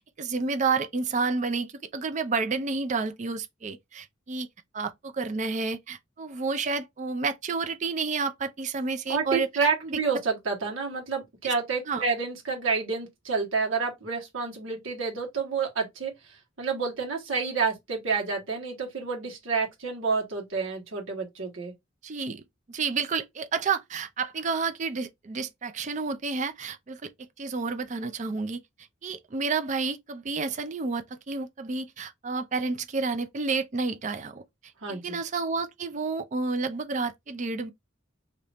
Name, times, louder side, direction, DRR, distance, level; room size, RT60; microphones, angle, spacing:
voice 1, 0.0-4.5 4.7-9.5 9.8-10.0 11.4-11.5 11.9-12.0 22.0-22.4 22.7-28.6 29.0-34.4 34.9-37.7, right 4 dB, 40° right, 0.4 m, -30 dB
voice 2, 9.1-21.7 34.8-35.2, right 5 dB, 90° right, 1.5 m, -29 dB
2.9 x 2.6 x 3.3 m
head